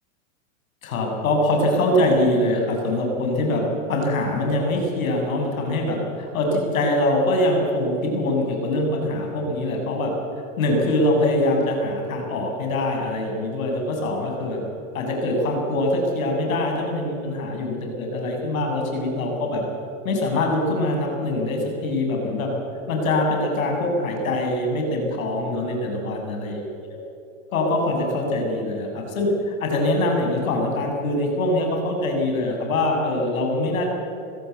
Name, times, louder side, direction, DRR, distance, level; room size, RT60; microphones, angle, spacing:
voice 1, 0.8-10.1 10.6-14.6 14.9-19.6 20.0-22.5 22.9-27.0 27.5-33.9, left 1 dB, 80° left, 1 dB, 7.0 m, -23 dB
23.0 x 16.0 x 8.2 m, 2.8 s
hypercardioid pair, 130°, 41 cm